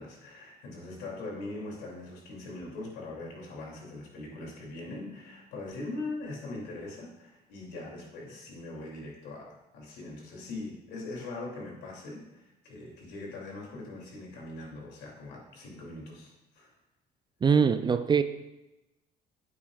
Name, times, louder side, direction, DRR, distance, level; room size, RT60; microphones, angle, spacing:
voice 1, 0.0-16.7, left 2 dB, 85° left, -2 dB, 2.9 m, -41 dB
voice 2, 17.4-18.2, right 6 dB, 25° right, 11 dB, 0.4 m, -22 dB
10.0 x 8.4 x 2.5 m, 0.97 s
cardioid pair, 110°, 17 cm